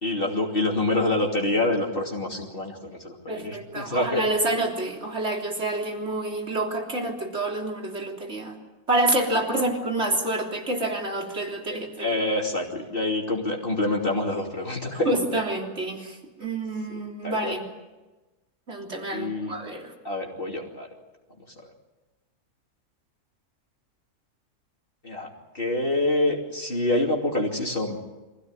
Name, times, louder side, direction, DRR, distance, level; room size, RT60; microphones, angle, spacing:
voice 1, 0.0-4.5 9.5-9.6 11.7-15.2 17.2-17.6 19.1-19.5 20.0-20.9 25.0-25.3 25.5-28.0, left 2 dB, 35° left, -1 dB, 3.1 m, -26 dB
voice 2, 3.3-8.6 8.9-12.1 15.1-17.6 18.7-19.9, right 2 dB, 45° right, 1 dB, 3.7 m, -28 dB
25.0 x 16.5 x 9.8 m, 1.1 s
omnidirectional pair, 1.6 m